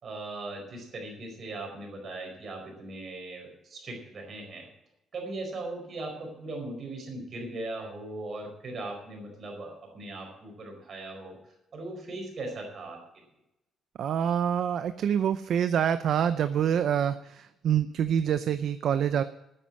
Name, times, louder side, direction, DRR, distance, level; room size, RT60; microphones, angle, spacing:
voice 1, 0.0-4.7 5.1-13.0, right 2 dB, 40° right, 2 dB, 4.7 m, -39 dB
voice 2, 14.0-19.2, right 9 dB, 55° right, 12 dB, 0.6 m, -26 dB
12.5 x 9.9 x 7.6 m, 0.87 s
cardioid pair, 175°, 0 cm